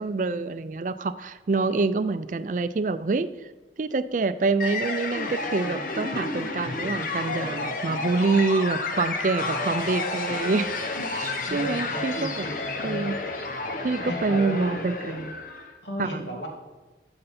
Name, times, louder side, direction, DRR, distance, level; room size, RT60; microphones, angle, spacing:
voice 1, 0.0-3.5 3.8-10.7 11.1-12.5 12.8-13.2 13.8-15.4 16.0-16.2, right 3 dB, 45° right, 13 dB, 0.4 m, -26 dB
sound 1, 4.6-15.7, left 3 dB, 50° left, 1.0 m, -31 dB
voice 2, 9.3-9.9 11.2-13.3 14.1-14.9 15.8-16.5, equal, 80° left, 0 dB, 2.3 m, -36 dB
13.0 x 6.7 x 4.2 m, 1.2 s
head